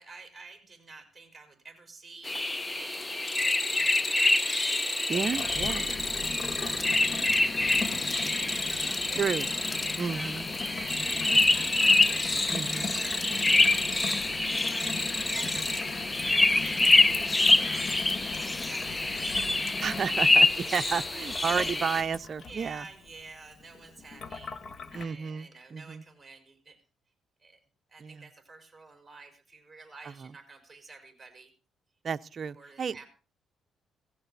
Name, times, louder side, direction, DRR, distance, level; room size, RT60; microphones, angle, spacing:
voice 1, 0.0-3.1 3.4-4.7 5.4-9.3 9.9-12.0 12.9-19.5 20.5-21.3 22.5-24.5 24.9-26.8 27.4-27.6 27.9-31.5 32.6-33.1, right 4 dB, 15° right, 5.2 m, -50 dB
sound 1, 2.2-22.0, left 2 dB, 20° left, 0.7 m, -26 dB
Gurgling / Water tap faucet / Sink (filling or washing), 5.1-25.0, left 4 dB, 50° left, 1.6 m, -40 dB
voice 2, 5.1-5.8 9.1-9.5 10.0-10.5 12.5-12.9 19.8-22.9 24.9-26.0 28.0-28.3 30.0-30.3 32.0-33.0, right 6 dB, 45° right, 0.7 m, -32 dB
16.5 x 16.0 x 4.1 m
cardioid pair, 90°, 0 cm